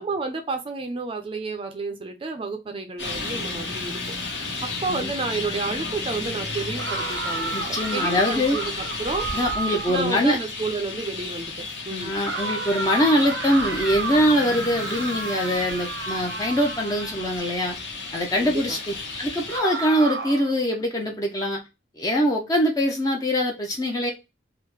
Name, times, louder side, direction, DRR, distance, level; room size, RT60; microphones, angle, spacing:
voice 1, 0.0-4.1 4.6-7.5 7.9-9.3 9.9-12.2 18.3-18.8, right 3 dB, 30° right, 0.5 m, -31 dB
Traffic noise roadway noise, 3.0-19.6, left 3 dB, 70° left, 1.0 m, -33 dB
sound 1, 6.8-10.2 12.2-17.5 19.5-20.5, right 4 dB, 80° right, 0.7 m, -32 dB
voice 2, 7.5-8.6 9.3-10.4 11.9-17.8 18.1-21.6 21.9-24.1, equal, 20° left, 0.5 m, -23 dB
3.6 x 2.1 x 3.0 m
head